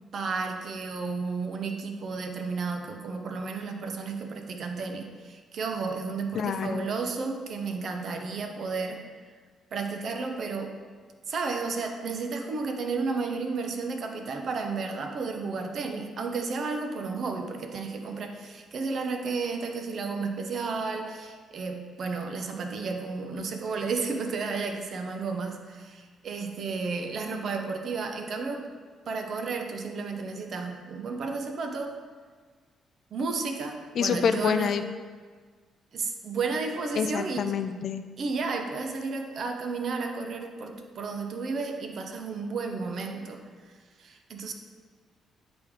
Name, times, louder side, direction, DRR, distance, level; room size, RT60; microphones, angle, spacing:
voice 1, 0.1-9.0 9.7-10.7 11.3-28.6 29.1-31.9 33.1-34.7 35.9-37.5 38.2-43.4 44.0-44.5, right 4 dB, 60° right, 4 dB, 0.7 m, -32 dB
voice 2, 6.3-6.9 34.0-34.8 37.0-38.0, left 7 dB, 60° left, 10 dB, 0.3 m, -27 dB
7.9 x 3.4 x 3.6 m, 1.5 s
cardioid pair, 90°, 0 cm